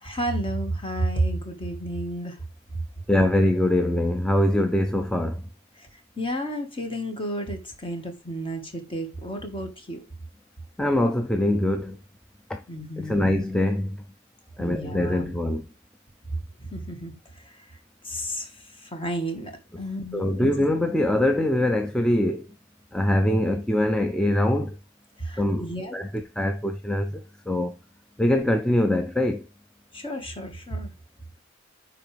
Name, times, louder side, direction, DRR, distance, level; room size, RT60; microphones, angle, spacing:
voice 1, 0.0-2.4 6.2-10.0 12.7-13.4 14.6-15.3 16.6-17.1 18.0-18.5 18.8-19.5 19.8-20.5 25.2-26.0 29.9-30.9, right 1 dB, 25° left, 1.6 m, -31 dB
voice 2, 3.1-5.5 10.8-12.0 12.5-12.6 13.0-14.0 14.6-15.7 20.1-22.5 22.9-24.8 25.4-27.2 27.5-27.7 28.2-29.5, left 1 dB, 5° left, 0.5 m, -23 dB
9.7 x 4.0 x 3.4 m
head